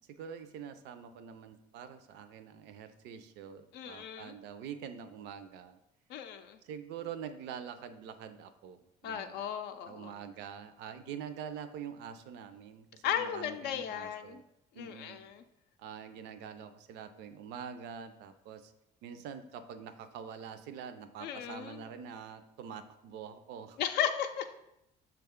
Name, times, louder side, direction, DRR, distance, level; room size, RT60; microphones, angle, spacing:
voice 1, 0.1-5.8 6.6-9.4 9.8-14.4 14.7-15.2 15.8-18.7 19.0-23.8, right 7 dB, 85° right, 10 dB, 0.4 m, -45 dB
voice 2, 3.7-4.3 6.1-6.6 9.0-10.1 13.0-14.4 14.8-15.4 21.2-21.9 23.8-24.5, left 9 dB, 80° left, 7 dB, 0.4 m, -35 dB
5.9 x 2.3 x 3.6 m, 0.84 s
cardioid pair, 110°, 17 cm